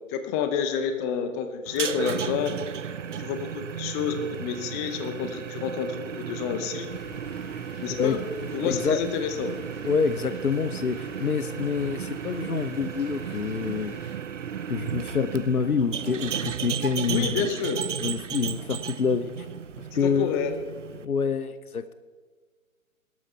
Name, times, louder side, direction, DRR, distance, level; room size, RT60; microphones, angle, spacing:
voice 1, 0.1-2.5 3.2-6.9 7.8-8.2 8.5-9.5 17.1-17.8 20.0-20.5, left 7 dB, 10° left, 8 dB, 0.6 m, -29 dB
sound 1, 1.7-21.1, right 8 dB, 60° right, 0.9 m, -34 dB
sound 2, 6.9-14.2, left 2 dB, 45° left, 3.4 m, -48 dB
voice 2, 8.6-9.0 9.8-13.9 14.7-17.5 18.0-19.5 20.0-20.4 21.0-21.9, left 6 dB, 90° left, 13 dB, 0.8 m, -27 dB
17.5 x 12.5 x 4.5 m, 1.4 s
figure-of-eight pair, 135°, 42 cm